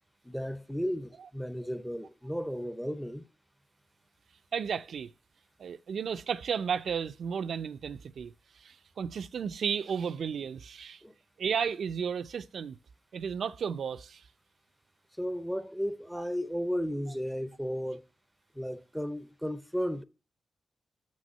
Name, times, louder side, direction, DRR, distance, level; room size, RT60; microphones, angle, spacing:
voice 1, 0.2-3.3 11.0-11.1 15.2-18.0 18.5-20.0, equal, ahead, 0.6 m, -34 dB
voice 2, 4.5-5.1 5.6-8.3 8.6-11.0 11.4-12.8 13.1-14.2, right 7 dB, 75° right, 0.4 m, -33 dB
6.6 x 6.4 x 5.3 m
cardioid pair, 85°, 0 cm